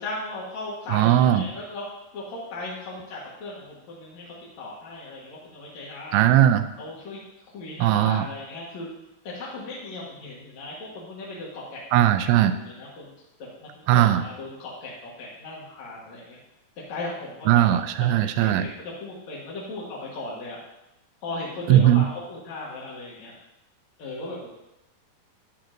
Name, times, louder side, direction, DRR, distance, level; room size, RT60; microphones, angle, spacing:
voice 1, 0.0-1.8 2.1-6.2 6.8-7.2 7.5-8.9 9.2-11.8 12.5-13.1 13.4-16.4 16.9-17.7 18.2-20.6 21.2-23.3 24.0-24.5, left 2 dB, 60° left, -5 dB, 2.1 m, -37 dB
voice 2, 0.9-1.5 6.1-6.7 7.8-8.3 11.9-12.5 13.9-14.2 17.5-18.7 21.7-22.1, right 12 dB, 85° right, 10 dB, 2.5 m, -18 dB
11.5 x 9.6 x 2.6 m, 0.93 s
omnidirectional pair, 4.8 m